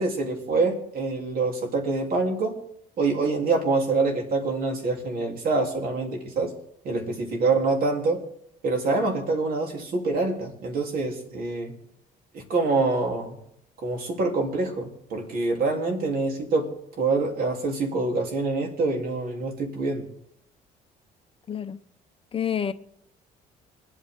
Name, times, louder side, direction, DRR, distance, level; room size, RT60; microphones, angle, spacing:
voice 1, 0.0-2.6 3.0-6.5 6.8-8.2 8.6-11.7 12.3-13.4 13.8-16.7 17.0-20.1, right 3 dB, 60° right, 3.3 m, -25 dB
voice 2, 21.5-21.8 22.3-22.7, left 8 dB, 35° left, 0.7 m, -28 dB
25.0 x 8.9 x 3.7 m
cardioid pair, 110°, 17 cm